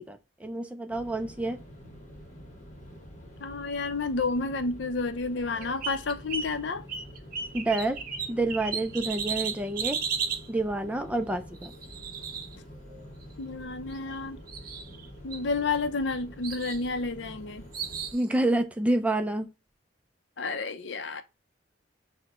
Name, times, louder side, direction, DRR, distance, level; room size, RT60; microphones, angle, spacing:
voice 1, 0.0-1.6 7.5-8.0 8.3-10.0 10.5-11.7 18.1-19.5, right 2 dB, 5° right, 0.3 m, -28 dB
sound 1, 0.9-18.2, equal, 40° left, 1.0 m, -47 dB
voice 2, 3.4-6.9 13.4-14.4 15.2-17.7 20.4-21.2, left 3 dB, 65° left, 0.5 m, -30 dB
sound 2, 5.4-6.5 6.9-10.5 11.6-13.0 13.9-14.2 14.5-15.1 15.3-16.1 16.4-16.8 17.7-18.2, right 6 dB, 50° right, 0.6 m, -35 dB
6.4 x 2.1 x 2.9 m
head